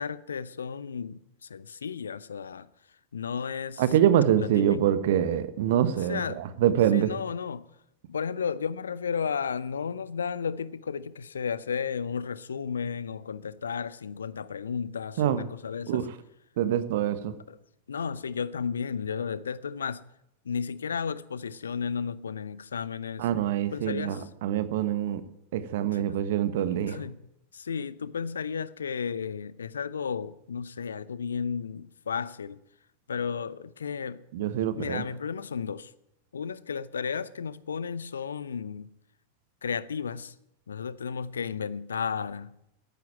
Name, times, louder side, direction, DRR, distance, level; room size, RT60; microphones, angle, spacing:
voice 1, 0.0-2.7 3.1-3.8 4.4-4.8 6.1-6.4 6.9-7.7 8.1-16.0 17.5-17.6 17.9-20.1 20.4-23.3 23.6-24.3 25.9-26.2 26.9-27.3 27.5-32.6 33.1-34.2 34.7-35.9 36.3-38.9 39.6-40.3 40.7-42.6, left 6 dB, 70° left, 0.7 m, -33 dB
voice 2, 3.8-7.1 15.2-15.4 15.9-16.0 16.6-17.3 23.2-25.2 25.5-27.0 34.3-35.0, right 10 dB, 55° right, 1.3 m, -25 dB
14.5 x 10.5 x 8.9 m
figure-of-eight pair, 90°, 0 cm